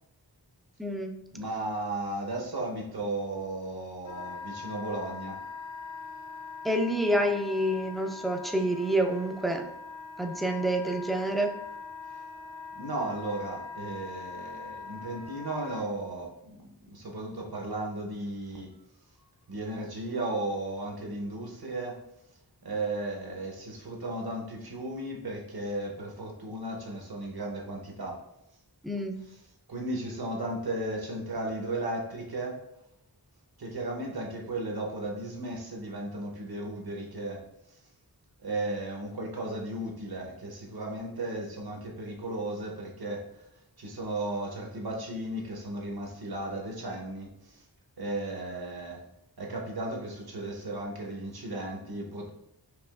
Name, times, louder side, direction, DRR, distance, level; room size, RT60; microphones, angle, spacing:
voice 1, 0.8-1.1 6.6-9.7 10.2-11.5 28.8-29.2, right 1 dB, ahead, 3 dB, 0.4 m, -28 dB
voice 2, 1.3-5.4 12.1-12.2 12.7-18.7 19.5-22.0 22.6-28.2 29.7-32.6 33.6-37.4 38.4-43.4 43.8-47.6 48.0-49.0 49.4-52.3, right 2 dB, 60° right, 0 dB, 0.9 m, -35 dB
Wind instrument woodwind instrument, 4.0-15.8, left 4 dB, 40° left, 0.8 m, -42 dB
4.8 x 2.9 x 2.4 m, 0.80 s
wide cardioid pair, 55°, 41 cm